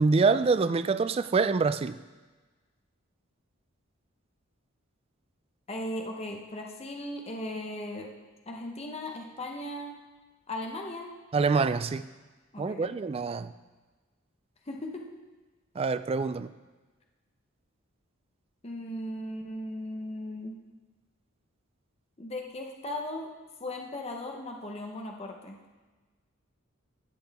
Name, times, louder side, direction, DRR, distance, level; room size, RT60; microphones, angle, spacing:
voice 1, 0.0-2.0 11.3-12.1 12.6-13.5 15.8-16.5, right 4 dB, 30° right, 13 dB, 0.3 m, -25 dB
voice 2, 5.7-8.1 8.5-10.0 10.5-11.1 12.5-12.9 14.7-15.1 18.6-20.6 22.2-23.3 23.6-25.6, left 1 dB, 30° left, 1 dB, 0.9 m, -37 dB
14.5 x 7.9 x 3.5 m, 1.3 s
head